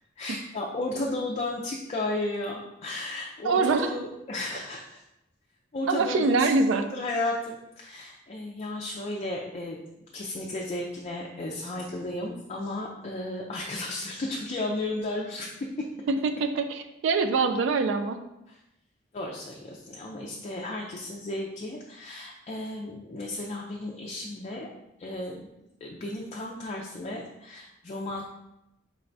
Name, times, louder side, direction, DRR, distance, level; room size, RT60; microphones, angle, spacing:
voice 1, 0.2-5.0 5.7-9.8 10.1-15.9 18.5-18.6 19.1-24.7 25.0-25.5 25.8-28.2, left 2 dB, 35° left, -1 dB, 0.4 m, -34 dB
voice 2, 3.4-3.9 5.9-6.8 16.1-18.2, right 4 dB, 80° right, 8 dB, 0.3 m, -24 dB
4.7 x 3.2 x 2.6 m, 0.89 s
head